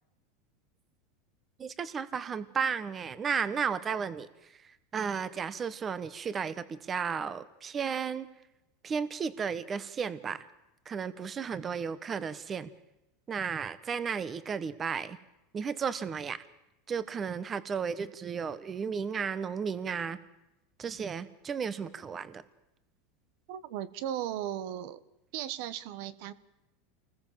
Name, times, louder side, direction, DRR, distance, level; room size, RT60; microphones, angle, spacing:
voice 1, 1.6-8.3 8.8-10.5 10.8-12.7 13.3-15.2 15.5-16.4 16.9-20.2 20.8-22.4, right 6 dB, 25° right, 15 dB, 1.3 m, -34 dB
voice 2, 23.5-25.0 25.3-26.3, right 11 dB, 60° right, 15 dB, 1.3 m, -36 dB
28.5 x 20.5 x 7.6 m, 0.92 s
supercardioid pair, 130°, 0 cm